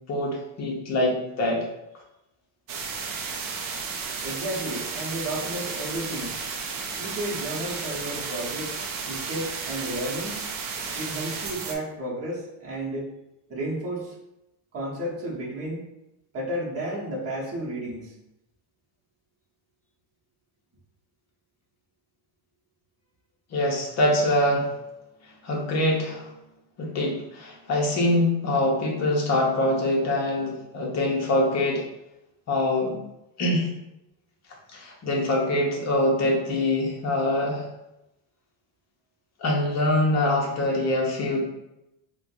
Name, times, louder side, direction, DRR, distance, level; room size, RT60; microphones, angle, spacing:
voice 1, 0.1-1.6 23.5-24.7 25.4-26.3 26.8-31.8 32.5-33.0 33.4-33.7 34.7-37.7 39.4-41.4, left 1 dB, 35° left, -2 dB, 0.7 m, -24 dB
sound 1, 2.7-11.7, right 5 dB, 45° right, 0.5 m, -33 dB
voice 2, 4.2-6.4 7.0-8.8 9.0-10.5 10.9-13.1 13.5-14.1 14.7-15.8 16.3-18.1, right 1 dB, 30° right, -5 dB, 0.9 m, -32 dB
4.4 x 2.3 x 2.5 m, 0.89 s
cardioid pair, 155°, 48 cm